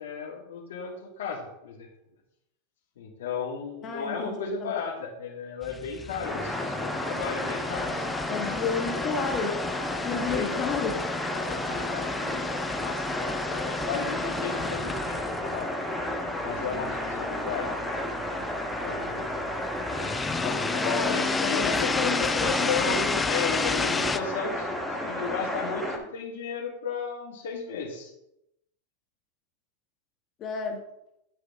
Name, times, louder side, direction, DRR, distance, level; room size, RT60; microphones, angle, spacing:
voice 1, 0.0-1.9 3.0-8.6 10.3-10.8 11.4-15.7 16.4-17.7 18.2-19.3 20.4-24.7 25.1-28.1, left 5 dB, 85° left, -4 dB, 1.8 m, -34 dB
voice 2, 3.8-4.7 8.3-9.6 10.0-10.9 11.7-11.8 20.8-23.2 30.4-30.8, left 5 dB, 35° left, 3 dB, 1.3 m, -32 dB
sound 1, 5.6-24.2, left 4 dB, 15° left, 0.4 m, -33 dB
sound 2, 6.2-26.0, left 1 dB, 5° right, 1.2 m, -32 dB
10.5 x 5.1 x 3.6 m, 0.82 s
supercardioid pair, 130°, 0 cm